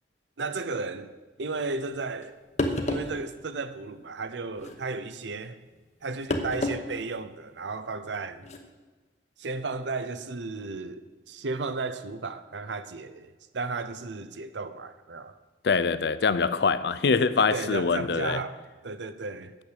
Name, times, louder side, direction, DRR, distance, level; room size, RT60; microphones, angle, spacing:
voice 1, 0.4-2.4 2.9-5.6 6.0-8.4 9.4-11.0 11.3-15.3 17.5-18.6 18.8-19.6, right 3 dB, 90° right, 0.7 m, -34 dB
sound 1, 2.2-2.3 2.6-3.2 4.5-4.8 6.3-6.8 7.2-7.3 8.4-8.6, left 1 dB, 40° left, 0.9 m, -29 dB
voice 2, 15.6-18.4, left 5 dB, 70° left, 0.5 m, -24 dB
8.5 x 6.7 x 8.1 m
head